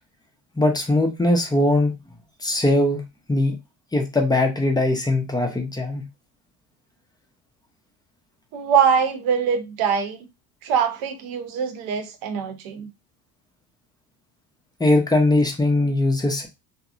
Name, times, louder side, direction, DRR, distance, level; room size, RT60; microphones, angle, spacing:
voice 1, 0.6-1.9 2.4-3.0 3.3-3.6 3.9-6.0 14.8-16.5, left 2 dB, 10° left, 0.5 m, -20 dB
voice 2, 8.5-10.2 10.6-12.9, right 7 dB, 75° right, 0.8 m, -23 dB
2.6 x 2.0 x 2.3 m
supercardioid pair, 95°, 50 cm